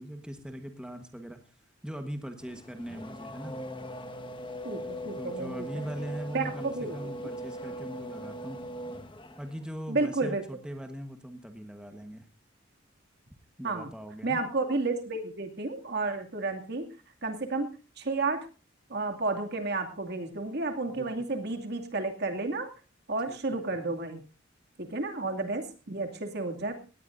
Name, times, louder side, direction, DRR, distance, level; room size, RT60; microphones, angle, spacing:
voice 1, 0.0-1.4 1.8-3.6 5.2-8.6 9.4-12.3 13.6-14.4 20.9-21.3 23.3-23.8, equal, 5° right, 5 dB, 1.3 m, -40 dB
Race car auto racing / Accelerating revving vroom, 2.4-9.7, equal, 25° left, 1.4 m, -40 dB
voice 2, 4.6-5.7 6.3-6.9 9.9-10.4 13.6-13.9 14.2-16.9 17.2-18.5 18.9-22.7 23.1-24.2 24.8-26.7, right 3 dB, 55° right, 5 dB, 2.4 m, -31 dB
18.5 x 18.0 x 2.6 m, 0.33 s
head